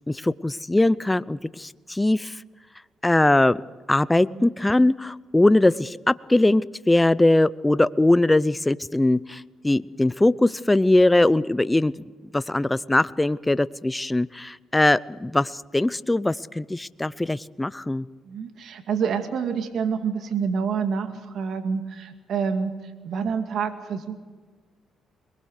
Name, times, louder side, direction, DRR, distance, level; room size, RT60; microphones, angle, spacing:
voice 1, 0.1-2.4 3.0-3.6 3.9-12.0 12.3-18.1, left 2 dB, 10° left, 18 dB, 0.6 m, -21 dB
voice 2, 18.3-24.2, right 6 dB, 65° right, 6 dB, 2.3 m, -28 dB
23.0 x 21.5 x 6.5 m, 1.4 s
cardioid pair, 90°, 0 cm